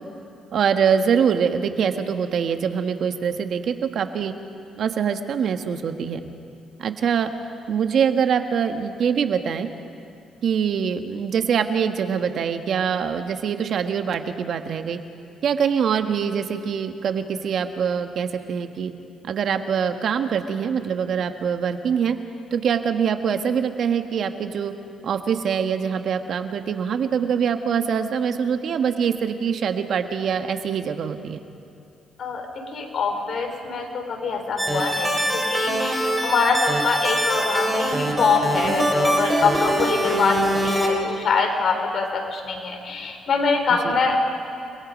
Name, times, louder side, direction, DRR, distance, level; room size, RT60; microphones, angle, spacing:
voice 1, 0.5-4.3 4.8-6.3 6.8-7.3 7.7-9.7 10.4-15.0 15.4-18.9 19.2-22.2 22.5-24.7 25.0-31.4 43.7-44.0, right 7 dB, 65° right, 7 dB, 1.4 m, -24 dB
voice 2, 32.2-44.2, left 4 dB, 60° left, 3 dB, 4.1 m, -24 dB
sound 1, 34.6-40.9, right 1 dB, 10° right, 4.8 m, -23 dB
30.0 x 21.5 x 5.3 m, 2.6 s
cardioid pair, 90°, 0 cm